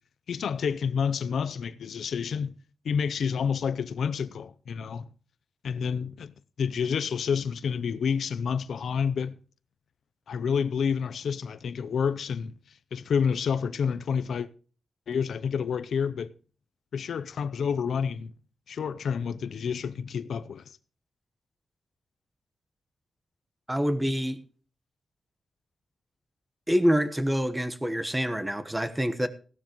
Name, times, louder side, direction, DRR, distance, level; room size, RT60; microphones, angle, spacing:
voice 1, 0.3-2.5 2.8-5.1 5.6-6.3 6.6-9.3 10.3-12.5 12.9-14.5 15.1-16.3 16.9-18.3 18.7-20.6, left 6 dB, 80° left, 0.6 m, -29 dB
voice 2, 23.7-24.4 26.7-29.3, equal, 10° right, 1.1 m, -26 dB
15.5 x 12.0 x 3.0 m
wide cardioid pair, 110°, 0 cm